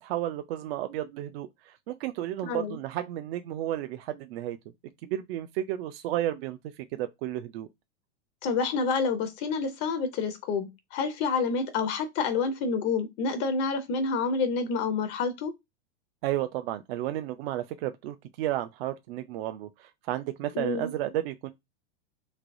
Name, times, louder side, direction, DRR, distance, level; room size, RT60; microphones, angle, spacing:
voice 1, 0.0-4.6 5.0-7.7 16.2-21.5, right 13 dB, 60° right, 0.4 m, -32 dB
voice 2, 2.4-2.8 8.4-15.5 20.5-20.9, left 4 dB, 30° left, 0.5 m, -28 dB
3.2 x 3.0 x 2.5 m
supercardioid pair, 145°, 35 cm